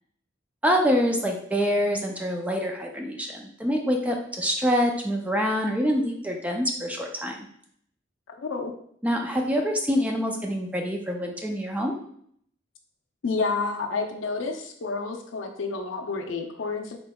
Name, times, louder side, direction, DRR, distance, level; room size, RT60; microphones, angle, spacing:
voice 1, 0.6-7.4 9.0-11.9, equal, 5° right, 1 dB, 0.4 m, -25 dB
voice 2, 8.3-8.7 13.2-17.0, left 4 dB, 90° left, 4 dB, 0.5 m, -30 dB
3.7 x 3.5 x 2.2 m, 0.65 s
head